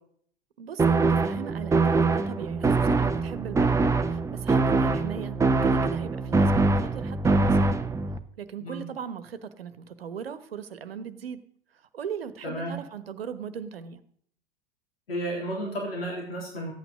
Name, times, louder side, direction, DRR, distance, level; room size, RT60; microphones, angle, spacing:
voice 1, 0.6-3.8 4.1-7.7 8.4-11.4 11.9-14.0, right 7 dB, 75° right, 12 dB, 1.2 m, -39 dB
sound 1, 0.8-8.2, right 3 dB, 10° right, 0.8 m, -23 dB
voice 2, 12.4-12.8 15.1-16.7, equal, 75° left, -1 dB, 3.5 m, -32 dB
14.5 x 9.2 x 6.3 m, 0.64 s
figure-of-eight pair, 90°, 30 cm